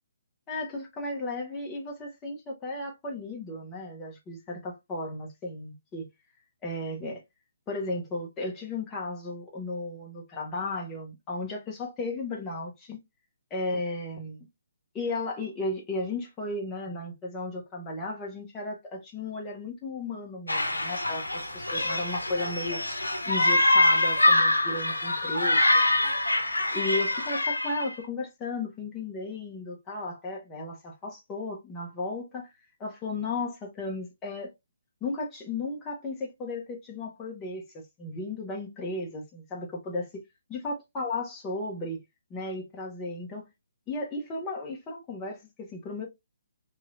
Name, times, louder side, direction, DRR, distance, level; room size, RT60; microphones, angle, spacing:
voice 1, 0.5-6.1 6.6-7.2 7.7-13.0 13.5-14.5 14.9-22.9 23.2-26.1 26.7-32.5 32.8-34.5 35.0-40.1 40.5-42.0 42.3-43.5 43.9-46.1, left 2 dB, 20° left, 1.0 m, -35 dB
sound 1, 20.5-27.9, left 2 dB, 90° left, 0.7 m, -24 dB
3.1 x 2.7 x 2.4 m
figure-of-eight pair, 140°, 0 cm